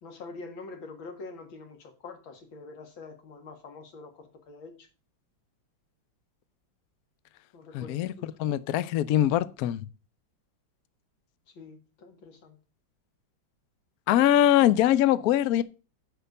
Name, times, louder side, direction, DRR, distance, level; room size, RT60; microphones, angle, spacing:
voice 1, 0.0-4.9 7.5-8.3 11.5-12.6, left 3 dB, 90° left, 2.5 m, -45 dB
voice 2, 7.7-9.9 14.1-15.6, left 12 dB, 70° left, 0.9 m, -23 dB
10.0 x 4.5 x 6.6 m
omnidirectional pair, 2.1 m